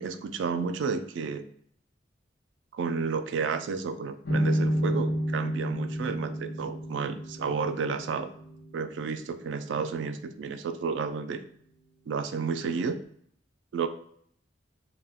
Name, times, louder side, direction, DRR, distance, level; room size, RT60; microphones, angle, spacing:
voice 1, 0.0-1.5 2.7-8.3 8.7-11.4 12.1-12.9 13.7-13.9, right 5 dB, 90° right, 9 dB, 0.3 m, -31 dB
sound 1, 4.2-11.5, equal, 75° left, 0.7 m, -32 dB
2.2 x 2.2 x 3.4 m, 0.65 s
head